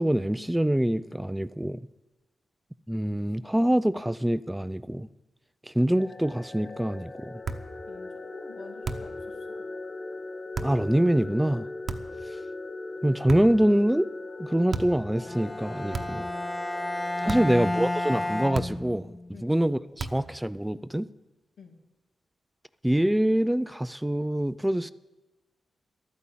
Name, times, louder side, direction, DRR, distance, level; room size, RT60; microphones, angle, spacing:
voice 1, 0.0-1.8 2.9-5.1 5.8-7.3 10.6-11.7 13.0-14.1 14.4-16.3 17.2-19.1 19.4-21.1 22.8-24.9, right 1 dB, 5° right, 16 dB, 0.4 m, -25 dB
sound 1, 6.0-18.5, left 2 dB, 35° left, 1.5 m, -40 dB
sound 2, 7.4-7.7 8.8-9.2 10.5-10.8 11.9-12.3 13.3-13.7 14.7-15.0 15.9-16.3 17.3-17.6 18.5-18.9 20.0-20.3, right 4 dB, 60° right, 1.0 m, -35 dB
voice 2, 7.9-9.6 19.3-19.6 21.6-21.7, left 5 dB, 85° left, 3 dB, 2.2 m, -49 dB
Bowed string instrument, 15.3-19.4, left 1 dB, 10° left, 0.8 m, -31 dB
12.5 x 9.7 x 8.5 m, 1.1 s
cardioid pair, 80°, 0 cm